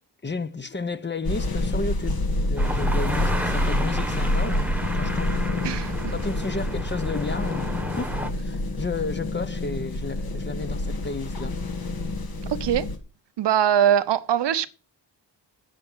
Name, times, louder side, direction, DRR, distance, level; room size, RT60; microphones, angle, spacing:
voice 1, 0.2-5.6 6.1-11.6, left 3 dB, 25° left, 0.9 m, -32 dB
sound 1, 1.2-13.0, left 2 dB, 55° left, 2.1 m, -27 dB
sound 2, 2.6-8.3, right 1 dB, 5° right, 1.4 m, -32 dB
voice 2, 5.6-6.1 12.5-12.9 13.4-14.7, right 9 dB, 70° right, 0.9 m, -22 dB
8.5 x 7.5 x 7.3 m
cardioid pair, 80°, 43 cm